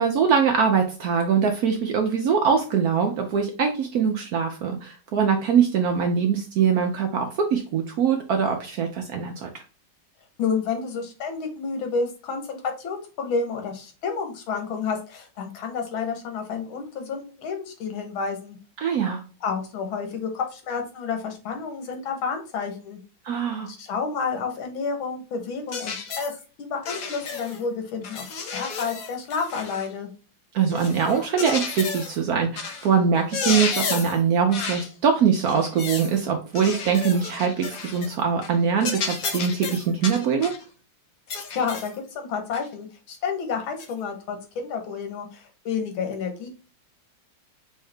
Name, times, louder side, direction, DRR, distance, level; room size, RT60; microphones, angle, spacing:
voice 1, 0.0-9.6 18.8-19.2 23.3-23.7 30.5-40.5, right 6 dB, 70° right, 3 dB, 0.9 m, -23 dB
voice 2, 10.4-18.6 19.4-23.0 23.7-26.3 26.6-28.2 28.5-30.1 41.3-46.5, left 5 dB, 85° left, 5 dB, 1.9 m, -30 dB
sound 1, 25.7-26.4 26.8-27.6 28.0-29.9 30.7-32.2 32.6-32.9 33.2-34.2 34.5-34.9 35.5-36.1 36.5-38.1 38.4-38.6 38.8-40.6 41.3-42.0 42.5-42.7 43.8-43.9, left 5 dB, 55° left, 1.1 m, -32 dB
5.5 x 2.7 x 3.3 m, 0.36 s
omnidirectional pair, 2.2 m